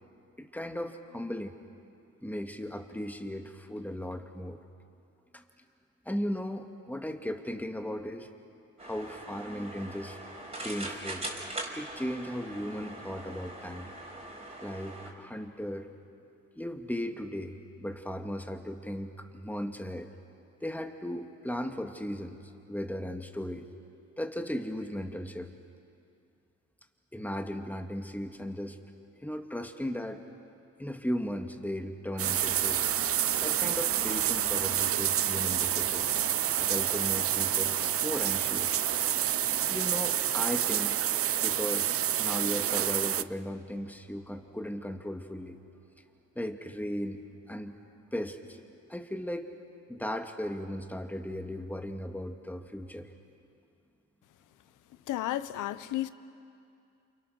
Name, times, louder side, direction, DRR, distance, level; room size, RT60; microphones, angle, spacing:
voice 1, 0.4-1.6 2.2-4.6 5.3-5.4 6.1-8.3 8.8-10.2 10.6-11.3 11.8-13.9 14.6-15.9 16.6-20.1 20.6-23.7 24.2-25.5 27.1-28.8 29.2-30.3 30.8-33.1 33.4-36.1 36.6-38.8 39.7-41.0 41.4-41.9 42.2-45.6 46.4-47.2 47.5-47.7 48.1-49.5 49.9-53.1, equal, 5° left, 2.1 m, -36 dB
sound 1, 8.8-15.1, right 2 dB, 20° right, 4.7 m, -41 dB
sound 2, 32.1-44.8, right 5 dB, 80° right, 3.1 m, -46 dB
sound 3, 32.2-43.2, right 10 dB, 50° right, 0.6 m, -28 dB
voice 2, 55.1-56.1, left 14 dB, 85° left, 0.9 m, -32 dB
29.0 x 28.5 x 6.5 m
cardioid pair, 90°, 30 cm